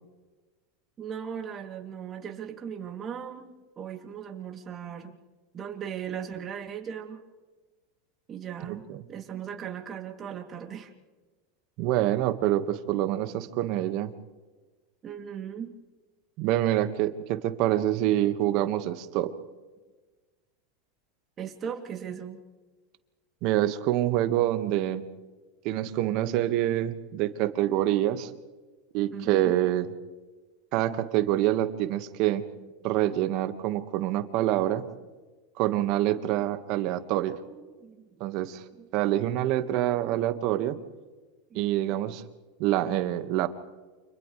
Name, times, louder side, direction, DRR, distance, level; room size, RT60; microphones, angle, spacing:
voice 1, 1.0-5.2 5.5-7.2 8.3-8.8 9.1-10.9 15.0-15.7 21.4-22.4 29.1-29.5 32.6-32.7 33.5-33.6 34.3-34.4 36.2-36.4 36.9-38.0 38.4-38.9 40.7-40.8 41.5-41.7, right 8 dB, 35° right, 2 dB, 3.0 m, -38 dB
voice 2, 8.7-9.0 11.8-14.1 16.4-19.3 23.4-25.1 25.6-28.3 28.9-29.9 30.7-32.4 32.8-34.9 35.6-37.4 38.2-38.6 38.9-40.8 41.5-42.2 42.6-43.5, right 13 dB, 55° right, 10 dB, 1.8 m, -26 dB
30.0 x 27.0 x 3.4 m, 1.3 s
hypercardioid pair, 100°, 0 cm